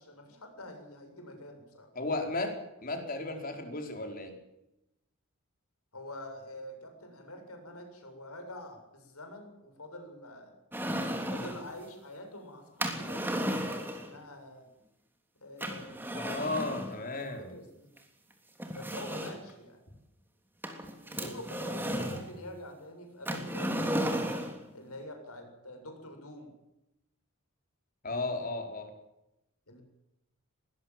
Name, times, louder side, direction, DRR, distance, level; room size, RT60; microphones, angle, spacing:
voice 1, 0.0-1.9 5.9-10.5 11.3-14.7 15.4-16.7 17.4-17.9 18.7-19.8 21.0-24.3 24.7-26.5 29.7-29.8, left 1 dB, 85° left, 5 dB, 7.4 m, -46 dB
voice 2, 1.9-4.3 16.1-17.5 28.0-28.9, left 2 dB, 40° left, 4 dB, 4.6 m, -34 dB
sound 1, 10.7-11.7 12.8-14.1 15.6-16.9 18.0-18.1 18.6-19.5 20.6-22.3 23.3-24.6, equal, 10° right, 3.2 m, -34 dB
21.5 x 19.5 x 7.6 m, 0.89 s
head